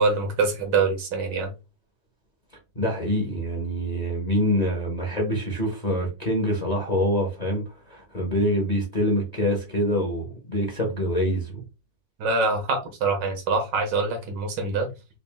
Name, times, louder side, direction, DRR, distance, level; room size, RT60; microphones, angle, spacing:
voice 1, 0.0-1.5 12.2-14.9, right 4 dB, 70° right, 1.6 m, -24 dB
voice 2, 2.7-11.6, equal, 30° left, 0.9 m, -25 dB
4.1 x 2.4 x 3.5 m
omnidirectional pair, 2.1 m